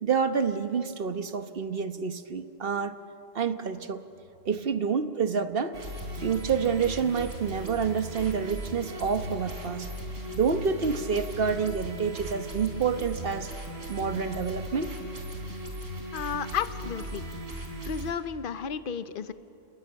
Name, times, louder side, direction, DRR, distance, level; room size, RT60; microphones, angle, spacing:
voice 1, 0.0-3.0 3.3-4.0 4.5-5.8 6.2-9.9 10.3-13.5 13.9-14.9, right 6 dB, 50° right, 9 dB, 1.2 m, -28 dB
sound 1, 5.7-18.1, right 1 dB, 80° right, 3.8 m, -38 dB
voice 2, 16.1-17.2 17.9-19.3, left 7 dB, 45° left, 12 dB, 0.9 m, -32 dB
29.0 x 21.5 x 8.9 m, 2.7 s
omnidirectional pair, 1.3 m